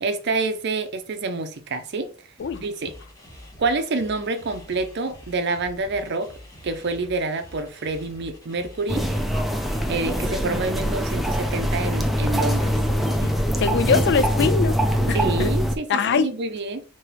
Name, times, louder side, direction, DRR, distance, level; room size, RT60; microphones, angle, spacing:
voice 1, 0.0-2.1 2.6-2.9 3.6-6.3 6.6-9.1 9.9-12.7 15.1-16.8, right 3 dB, 60° right, 0.6 m, -27 dB
sound 1, 2.4-11.5, left 1 dB, 15° left, 1.3 m, -46 dB
sound 2, 8.9-15.8, equal, ahead, 0.4 m, -23 dB
voice 2, 13.6-14.8 15.1-15.5 15.9-16.4, left 5 dB, 60° left, 0.4 m, -22 dB
3.3 x 3.0 x 4.5 m
head